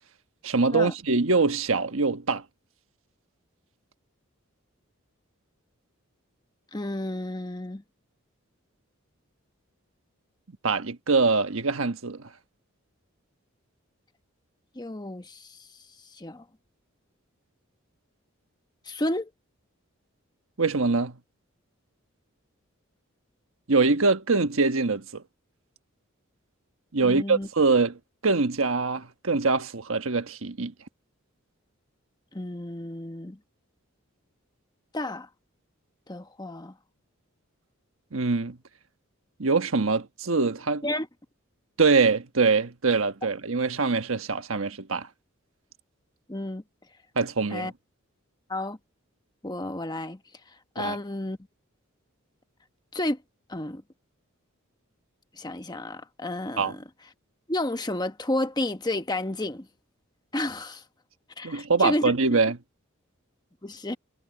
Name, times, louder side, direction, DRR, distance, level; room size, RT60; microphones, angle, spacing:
voice 1, 0.4-2.4 10.6-12.2 20.6-21.2 23.7-25.2 26.9-30.7 38.1-38.6 39.4-40.8 41.8-45.1 47.1-47.7 50.8-51.0 56.6-56.7 61.4-62.6, right 4 dB, 70° right, 1.3 m, -24 dB
voice 2, 6.7-7.8 14.7-15.6 16.2-16.4 18.9-19.3 27.0-27.5 32.3-33.4 34.9-35.3 36.1-36.7 40.8-41.1 46.3-46.6 47.5-47.7 48.5-48.8 49.4-50.2 50.7-51.4 52.9-53.2 53.5-53.8 55.3-56.8 57.5-59.7 60.3-60.8 61.4-62.4 63.6-64.0, left 1 dB, 20° left, 1.2 m, -31 dB
head